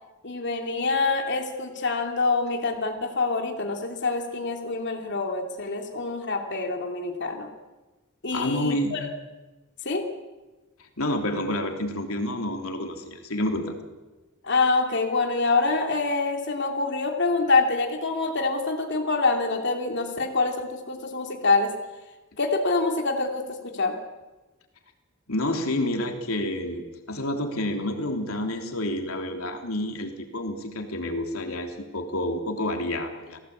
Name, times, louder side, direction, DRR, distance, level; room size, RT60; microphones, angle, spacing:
voice 1, 0.2-7.5 8.2-9.1 9.8-10.1 14.4-21.7 22.4-24.0, left 3 dB, 55° left, 3 dB, 2.9 m, -26 dB
voice 2, 8.3-8.9 11.0-13.8 25.3-26.8 27.1-33.4, left 1 dB, 90° left, 4 dB, 3.4 m, -29 dB
30.0 x 18.5 x 8.6 m, 1.2 s
head